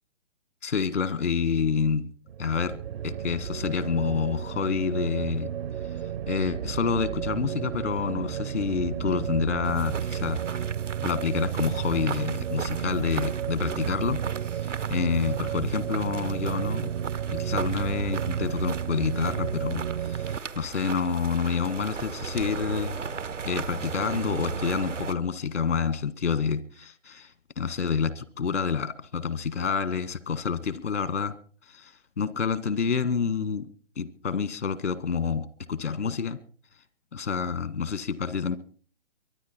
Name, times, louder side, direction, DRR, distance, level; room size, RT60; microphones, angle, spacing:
voice 1, 0.6-2.1 2.4-2.8 3.0-5.5 6.3-10.4 11.0-14.2 14.6-16.9 17.3-23.0 23.5-31.3 31.7-33.6 34.0-36.4 37.1-38.6, left 6 dB, 80° left, 15 dB, 1.7 m, -28 dB
sound 1, 2.3-20.4, right 9 dB, 55° right, 0.7 m, -32 dB
sound 2, 9.6-25.1, right 5 dB, 85° right, 1.1 m, -37 dB
23.5 x 10.5 x 4.3 m, 0.42 s
figure-of-eight pair, 135°, 36 cm